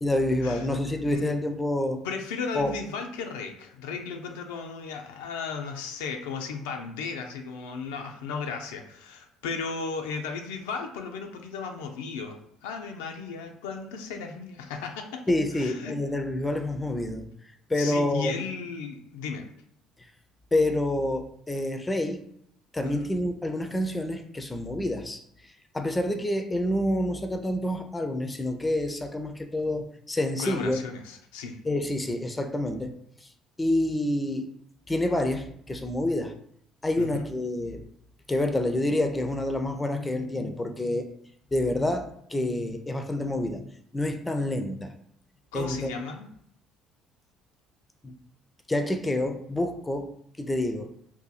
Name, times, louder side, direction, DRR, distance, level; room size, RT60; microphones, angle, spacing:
voice 1, 0.0-2.0 2.5-2.7 15.3-17.3 17.7-18.5 20.5-22.2 22.7-25.2 25.7-30.8 31.6-32.9 33.6-34.5 34.9-36.3 36.8-37.8 38.3-41.1 41.5-43.6 43.9-44.9 45.5-46.0 48.0-48.2 48.7-50.1 50.4-50.9, left 1 dB, 15° left, 7 dB, 0.5 m, -28 dB
voice 2, 2.0-15.2 15.5-15.9 17.7-19.5 22.8-23.1 30.4-31.6 37.0-37.2 45.5-46.3, left 5 dB, 85° left, 3 dB, 0.4 m, -35 dB
2.7 x 2.2 x 4.0 m, 0.67 s
supercardioid pair, 70°, 0 cm